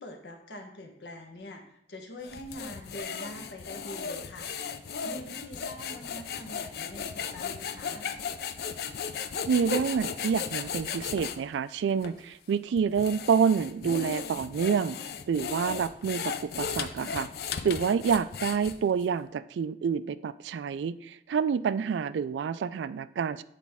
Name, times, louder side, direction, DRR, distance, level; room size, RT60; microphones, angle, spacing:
voice 1, 0.0-4.5 5.0-8.0 18.0-18.2, left 1 dB, 80° left, 4 dB, 1.0 m, -44 dB
sound 1, 2.2-11.4 12.0-12.1 12.8-19.0, left 6 dB, 60° left, 0.4 m, -36 dB
voice 2, 9.5-15.0 15.3-17.3 17.6-23.4, right 6 dB, 90° right, 15 dB, 0.3 m, -28 dB
8.3 x 4.2 x 3.5 m, 0.72 s
head